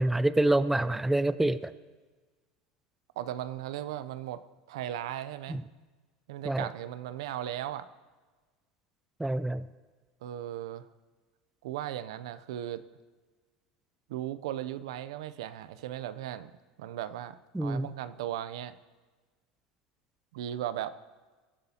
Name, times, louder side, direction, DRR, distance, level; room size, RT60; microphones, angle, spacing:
voice 1, 0.0-1.7 5.5-5.6 6.4-6.7 9.2-9.7 17.5-17.9, right 1 dB, 5° right, 13 dB, 0.5 m, -27 dB
voice 2, 3.2-4.4 4.7-5.6 6.3-7.9 10.2-10.9 11.6-12.8 14.1-16.5 16.8-18.8 20.3-21.0, right 12 dB, 80° right, 14 dB, 0.6 m, -37 dB
22.0 x 12.5 x 2.9 m, 1.3 s
hypercardioid pair, 95°, 3 cm